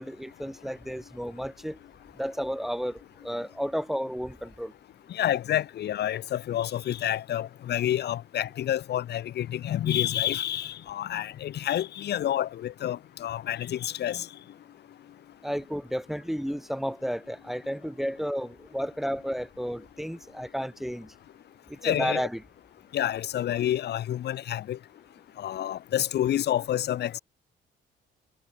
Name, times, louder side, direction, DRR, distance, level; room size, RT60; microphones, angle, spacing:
voice 1, 0.0-1.8 2.2-4.7 15.4-21.1 21.7-22.4, equal, ahead, 1.1 m, -32 dB
voice 2, 5.1-14.3 21.8-22.3 22.9-24.8 25.4-27.2, left 11 dB, 55° left, 0.6 m, -29 dB
cardioid pair, 90°, 20 cm